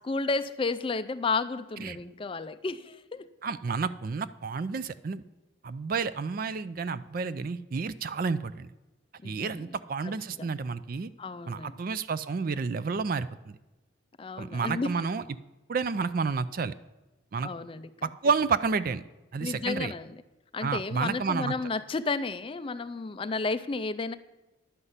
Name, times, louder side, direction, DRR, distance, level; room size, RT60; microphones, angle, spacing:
voice 1, 0.0-3.3 9.2-9.7 10.0-10.5 11.2-11.8 14.2-14.9 17.4-18.1 19.4-20.2 20.5-24.2, left 3 dB, 25° left, 12 dB, 0.4 m, -32 dB
voice 2, 3.4-5.2 5.6-8.7 9.2-11.1 11.5-13.6 14.4-15.2 15.7-16.7 17.3-17.5 18.0-19.1 19.3-19.9 20.6-21.5, right 5 dB, 45° right, 14 dB, 0.4 m, -30 dB
11.0 x 5.6 x 8.0 m, 1.1 s
head